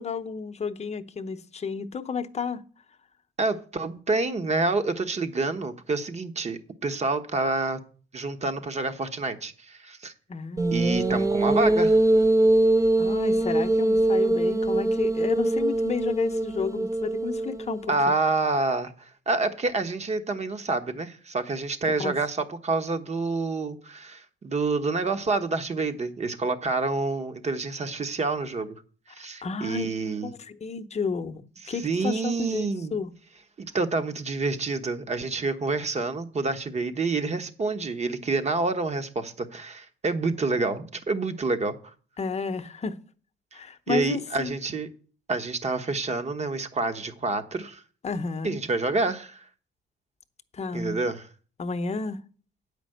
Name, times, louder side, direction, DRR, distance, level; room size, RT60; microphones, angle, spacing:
voice 1, 0.0-2.6 10.3-10.6 13.0-17.9 22.0-22.1 29.4-29.9 30.2-32.7 32.9-33.1 42.2-43.0 43.5-44.5 48.0-48.6 50.5-51.0 51.6-52.2, left 5 dB, 35° left, 0.8 m, -32 dB
voice 2, 3.4-7.8 8.1-10.1 10.7-12.0 17.9-28.8 29.1-30.3 31.6-32.9 33.6-41.9 43.5-44.9 45.3-47.8 48.4-49.5 50.7-51.3, right 3 dB, 35° right, 1.2 m, -28 dB
sound 1, 10.6-18.0, right 1 dB, 15° right, 0.6 m, -23 dB
8.9 x 5.2 x 7.8 m
cardioid pair, 90°, 20 cm